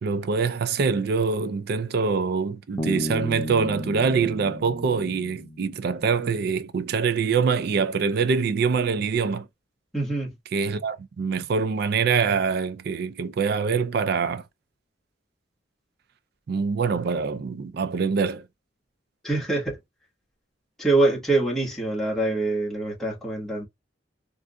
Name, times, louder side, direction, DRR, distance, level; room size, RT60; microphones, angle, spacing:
voice 1, 0.0-9.5 10.5-14.4 16.5-18.4, right 5 dB, 55° right, 0.4 m, -24 dB
Bass guitar, 2.8-6.3, equal, 25° left, 0.5 m, -34 dB
voice 2, 9.9-10.3 19.2-19.8 20.8-23.6, right 2 dB, ahead, 1.4 m, -24 dB
3.5 x 2.5 x 2.2 m
head